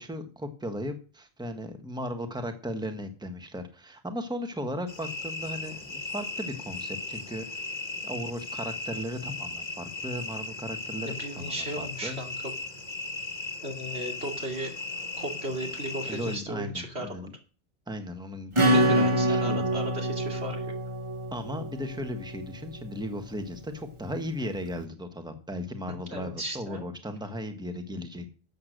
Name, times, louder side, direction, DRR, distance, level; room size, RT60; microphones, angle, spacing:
voice 1, 0.0-7.6 8.0-12.2 16.1-17.3 17.9-19.8 21.3-28.3, equal, 5° right, 6 dB, 1.4 m, -36 dB
sound 1, 4.9-16.4, left 3 dB, 45° left, 1.3 m, -37 dB
voice 2, 11.0-12.3 13.6-14.8 15.2-17.3 18.6-20.7 26.0-26.9, right 1 dB, 75° right, 2 dB, 2.9 m, -36 dB
Acoustic guitar / Strum, 18.6-22.8, right 1 dB, 30° right, 1.3 m, -26 dB
13.0 x 7.9 x 6.6 m, 0.37 s
omnidirectional pair, 1.1 m